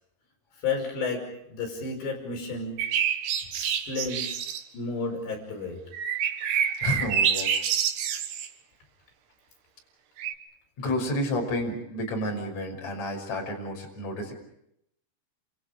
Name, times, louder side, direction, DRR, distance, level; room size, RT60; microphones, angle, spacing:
voice 1, 0.6-2.8 3.6-4.3 4.7-5.8, left 4 dB, 60° left, 2 dB, 7.4 m, -32 dB
sound 1, 2.8-4.6 5.9-8.5 10.2-10.3, right 8 dB, 65° right, 3.3 m, -27 dB
voice 2, 6.5-7.6 10.8-14.3, left 1 dB, 35° left, 1 dB, 6.9 m, -31 dB
29.5 x 29.0 x 5.1 m, 0.77 s
omnidirectional pair, 5.6 m